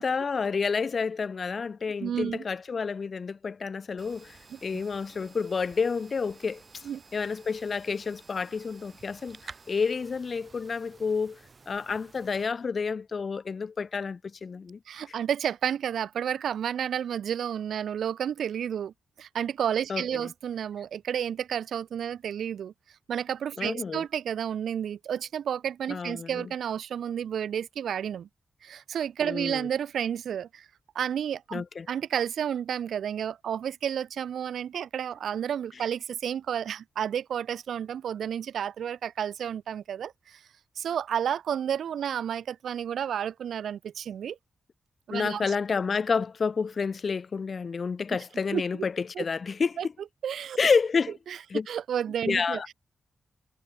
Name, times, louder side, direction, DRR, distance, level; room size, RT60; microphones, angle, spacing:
voice 1, 0.0-6.9 7.1-9.4 9.7-11.4 11.7-14.8 19.9-20.3 23.6-24.0 25.9-26.5 29.2-29.7 31.5-31.9 45.1-49.9 50.6-51.1 51.5-51.7 52.3-52.7, left 5 dB, 40° left, 0.9 m, -29 dB
voice 2, 2.0-2.4 4.5-4.8 6.8-7.0 14.9-22.7 23.1-28.3 28.6-30.7 31.0-40.4 40.8-44.4 45.1-45.6 48.5-48.9 49.2-49.3 49.8-49.9 50.2-50.6 51.3-51.4 51.7-52.6, right 9 dB, 85° right, 1.8 m, -31 dB
sound 1, 4.0-12.4, right 4 dB, 30° right, 4.3 m, -52 dB
wide cardioid pair, 170°, 0 cm